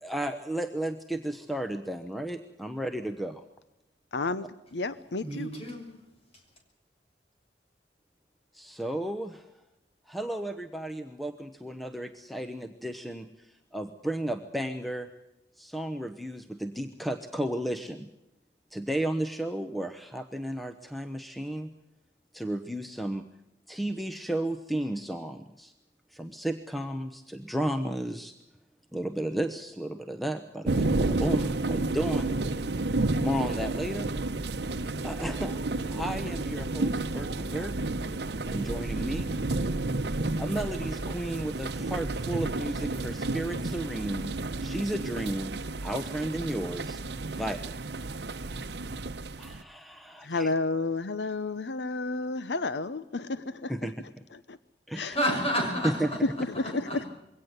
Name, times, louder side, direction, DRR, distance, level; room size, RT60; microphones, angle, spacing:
voice 1, 0.0-3.4 8.5-9.5 10.1-15.1 15.6-18.1 18.7-21.7 22.3-23.2 23.7-25.7 26.1-28.3 28.9-32.4 33.2-34.1 35.0-35.6 35.9-37.8 38.5-39.3 40.4-44.3 44.6-45.5 45.8-47.0 47.3-47.7 49.4-50.5 53.7-54.2 54.9-55.2 55.8-56.1, right 1 dB, ahead, 1.0 m, -33 dB
voice 2, 4.1-5.5 50.2-53.9 54.3-54.6 54.9-55.1 56.2-57.1, left 3 dB, 80° left, 0.8 m, -31 dB
voice 3, 5.2-6.0 55.1-56.2 56.5-57.1, equal, 35° left, 6.5 m, -30 dB
sound 1, 30.7-49.6, right 2 dB, 75° right, 0.9 m, -31 dB
23.0 x 17.5 x 8.0 m
head